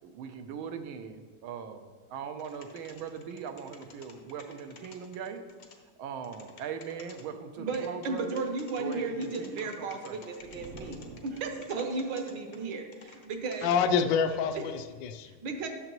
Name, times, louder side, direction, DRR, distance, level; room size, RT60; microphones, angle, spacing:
voice 1, 0.0-5.4 6.0-8.4 8.8-10.2, right 7 dB, 90° right, 7 dB, 1.5 m, -40 dB
sound 1, 2.4-5.8 6.2-7.2 7.7-13.3 13.5-13.8, left 5 dB, 55° left, 0.7 m, -52 dB
voice 2, 7.6-13.7 15.4-15.7, right 3 dB, 70° right, 5 dB, 1.4 m, -35 dB
sound 2, 10.4-12.0, right 1 dB, 45° right, 0.8 m, -47 dB
voice 3, 13.6-15.4, left 6 dB, 75° left, 8 dB, 1.2 m, -27 dB
10.5 x 6.7 x 3.0 m, 1.4 s
omnidirectional pair, 2.2 m